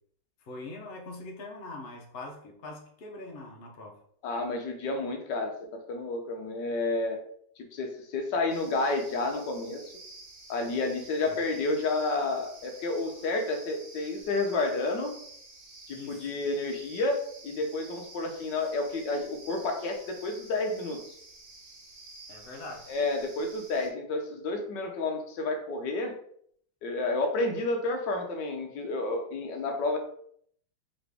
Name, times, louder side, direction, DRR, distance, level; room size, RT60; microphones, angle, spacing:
voice 1, 0.4-4.0 10.7-10.9 11.3-11.4 15.9-16.3 22.3-22.9, left 2 dB, 85° left, 1 dB, 0.5 m, -43 dB
voice 2, 4.2-7.2 7.7-9.8 10.5-15.2 15.9-17.2 17.4-21.0 22.9-26.1 26.8-30.0, left 2 dB, 70° left, 3 dB, 1.3 m, -30 dB
sound 1, 8.5-23.9, right 3 dB, 90° right, 1.9 m, -50 dB
3.9 x 3.1 x 3.4 m, 0.64 s
omnidirectional pair, 2.1 m